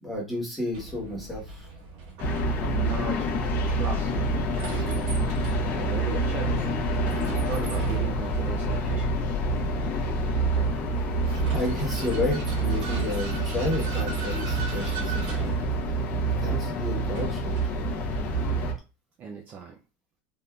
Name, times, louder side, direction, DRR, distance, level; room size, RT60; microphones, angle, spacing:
voice 1, 0.0-1.7 11.3-15.5 16.2-17.5, left 1 dB, ahead, -4 dB, 1.1 m, -32 dB
Vehicle, 0.7-18.8, right 3 dB, 65° right, 1.3 m, -41 dB
sound 1, 2.2-18.7, right 1 dB, 35° left, 0.6 m, -27 dB
voice 2, 2.6-3.3 3.6-4.4 4.7-5.0 5.7-6.6 7.4-9.1 19.2-19.8, right 5 dB, 30° right, 2 dB, 0.4 m, -37 dB
3.5 x 2.6 x 2.3 m, 0.31 s
supercardioid pair, 160°, 6 cm